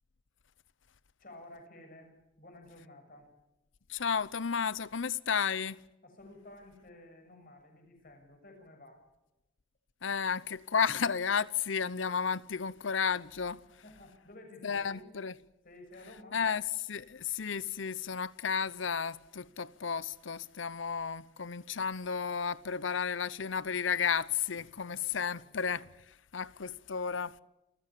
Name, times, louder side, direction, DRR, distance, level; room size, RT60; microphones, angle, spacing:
voice 1, 1.2-3.3 6.0-9.0 13.8-15.1 15.6-16.4 24.8-25.5, left 1 dB, 50° left, 6.9 m, -53 dB
voice 2, 3.9-5.8 10.0-13.8 14.6-15.3 16.3-27.4, left 6 dB, 80° left, 0.8 m, -33 dB
28.5 x 15.0 x 9.9 m
head